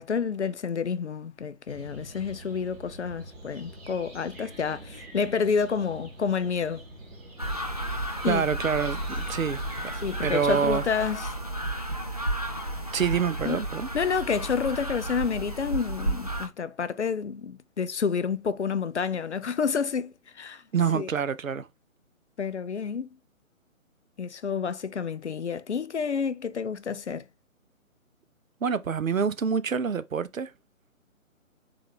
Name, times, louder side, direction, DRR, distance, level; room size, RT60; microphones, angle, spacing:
voice 1, 0.0-6.9 8.2-8.4 10.0-11.3 13.4-13.6 13.9-20.6 20.9-21.1 22.4-23.1 24.2-27.3, left 6 dB, 55° left, 0.5 m, -29 dB
sound 1, 1.7-10.7, right 2 dB, 10° right, 1.1 m, -45 dB
sound 2, 7.4-16.5, right 1 dB, 30° right, 0.4 m, -32 dB
voice 2, 8.3-9.6 10.2-10.8 12.9-13.9 20.7-21.7 28.6-30.5, right 7 dB, 75° right, 0.6 m, -26 dB
3.8 x 3.5 x 3.5 m
figure-of-eight pair, 140°, 41 cm